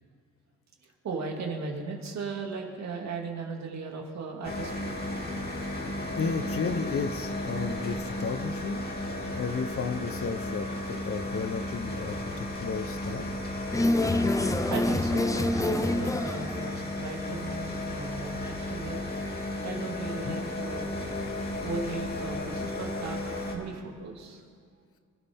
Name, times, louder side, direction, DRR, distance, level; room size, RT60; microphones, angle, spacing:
voice 1, 0.8-4.9 6.1-6.2 14.7-19.0 19.6-20.9 21.6-23.2 23.5-24.4, right 4 dB, 65° right, 1 dB, 2.6 m, -37 dB
sound 1, 4.4-23.6, left 1 dB, 30° left, 2.8 m, -34 dB
voice 2, 6.2-8.8 9.4-13.3 20.3-20.4, left 5 dB, 45° left, 9 dB, 1.1 m, -33 dB
sound 2, 13.7-16.7 19.2-19.3, left 2 dB, 10° left, 0.7 m, -26 dB
25.5 x 12.5 x 3.7 m, 2.1 s
cardioid pair, 90°, 30 cm